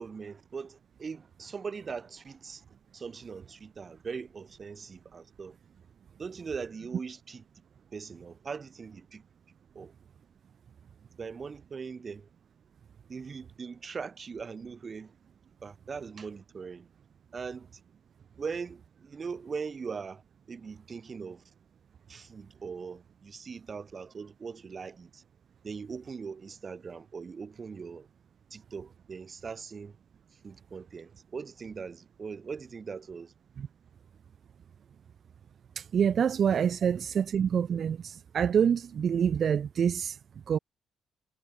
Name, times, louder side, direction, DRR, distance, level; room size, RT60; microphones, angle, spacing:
voice 1, 0.0-2.6 2.9-5.6 6.2-7.4 7.9-9.2 9.8-9.9 11.2-12.3 13.1-15.1 15.6-16.9 17.3-17.7 18.4-20.2 20.5-21.4 22.1-25.2 25.6-28.1 28.5-30.0 30.4-33.3 36.8-36.9, right 5 dB, 40° right, 1.7 m, -40 dB
voice 2, 35.8-40.2 40.5-40.6, right 8 dB, 55° right, 0.5 m, -26 dB
cardioid pair, 90°, 0 cm